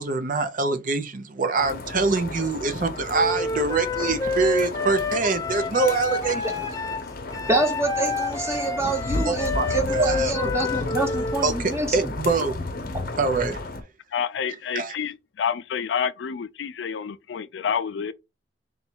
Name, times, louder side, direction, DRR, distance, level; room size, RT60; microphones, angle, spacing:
voice 1, 0.0-6.5 9.3-9.7 9.9-10.5 11.4-12.5 13.2-13.6 14.7-15.0, right 4 dB, 50° right, 0.6 m, -24 dB
sound 1, 1.6-13.8, left 2 dB, 55° left, 0.8 m, -33 dB
Wind instrument woodwind instrument, 3.1-11.5, left 3 dB, 20° left, 0.6 m, -28 dB
voice 2, 7.5-12.1, right 2 dB, 15° right, 1.0 m, -26 dB
voice 3, 14.1-18.1, left 7 dB, 85° left, 0.4 m, -28 dB
4.0 x 2.3 x 4.4 m
head